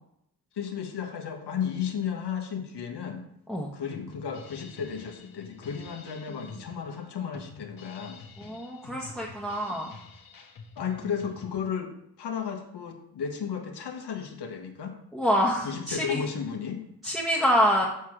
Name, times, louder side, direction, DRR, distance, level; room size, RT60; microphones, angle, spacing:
voice 1, 0.5-3.2 3.7-8.2 10.8-11.9 12.2-15.0 15.6-16.8, left 7 dB, 75° left, 4 dB, 1.4 m, -34 dB
Drum kit, 3.9-11.5, left 4 dB, 60° left, 1.5 m, -47 dB
voice 2, 8.4-9.9 15.1-16.2 17.0-17.8, equal, ahead, -3 dB, 1.3 m, -26 dB
7.1 x 4.7 x 6.0 m, 0.77 s
cardioid pair, 85°, 40 cm